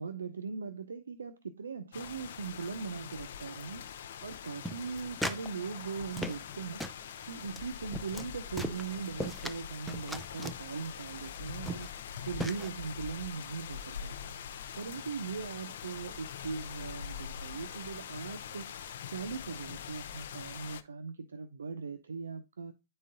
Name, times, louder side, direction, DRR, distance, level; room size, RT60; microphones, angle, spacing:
voice 1, 0.0-3.9 4.2-6.9 7.3-14.3 14.8-18.7 19.1-22.7, right 5 dB, 80° right, 0.4 m, -40 dB
sound 1, 1.9-20.8, left 8 dB, 65° left, 0.5 m, -43 dB
sound 2, 4.7-5.5 5.8-6.5 6.8-7.0 7.5-7.6 7.9-8.3 8.6-9.6 9.9-10.6 11.3-11.4 11.7-12.0 12.4-12.7, equal, ahead, 0.5 m, -38 dB
9.9 x 3.9 x 2.5 m
hypercardioid pair, 110°, 0 cm